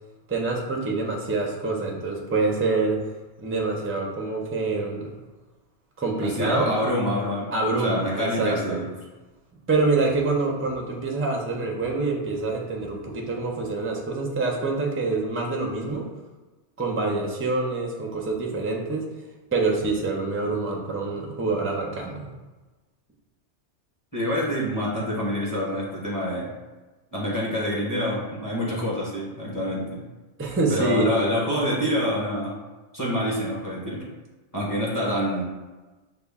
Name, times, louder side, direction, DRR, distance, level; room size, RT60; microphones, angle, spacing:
voice 1, 0.3-3.0 3.4-5.1 6.0-6.7 7.5-8.8 9.7-16.1 16.8-19.1 19.5-22.2 30.4-31.1, right 3 dB, 20° right, 0 dB, 0.3 m, -26 dB
voice 2, 6.2-8.9 24.1-26.5 27.1-29.8 30.7-32.6 32.9-34.0 34.5-35.4, equal, 20° left, -6 dB, 1.0 m, -26 dB
5.5 x 2.4 x 3.5 m, 1.2 s
omnidirectional pair, 1.2 m